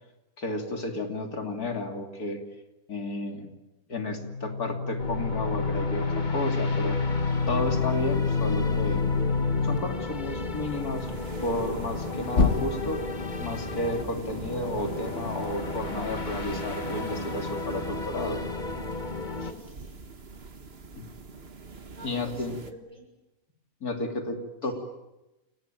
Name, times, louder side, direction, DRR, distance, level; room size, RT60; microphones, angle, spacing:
voice 1, 0.4-2.4 2.9-3.5 3.9-7.0 7.5-9.0 9.6-11.1 11.4-13.0 13.4-18.4 21.0-21.1 22.0-22.6 23.8-24.7, left 2 dB, 85° left, 4 dB, 3.3 m, -32 dB
sound 1, 4.0-9.8 12.3-13.1, left 4 dB, 50° left, 1.9 m, -27 dB
sound 2, 5.0-19.5, left 3 dB, 30° left, 1.6 m, -34 dB
sound 3, 6.7-22.7, right 4 dB, 45° right, 1.7 m, -44 dB
voice 2, 19.3-20.0 21.9-23.1 24.6-24.7, equal, 25° right, 3 dB, 6.6 m, -49 dB
28.5 x 19.0 x 9.0 m, 0.98 s
omnidirectional pair, 1.6 m